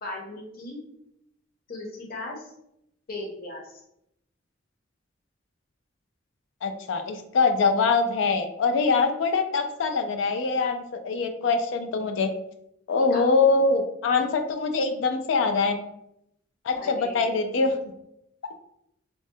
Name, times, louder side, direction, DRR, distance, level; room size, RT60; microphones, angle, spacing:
voice 1, 0.0-0.8 1.7-2.5 3.1-3.6 13.1-13.2 16.8-17.3, left 2 dB, 50° left, -2 dB, 0.7 m, -37 dB
voice 2, 6.6-12.3 12.9-15.8 16.6-17.9, left 4 dB, 85° left, 6 dB, 0.3 m, -23 dB
3.4 x 2.1 x 2.7 m, 0.79 s
head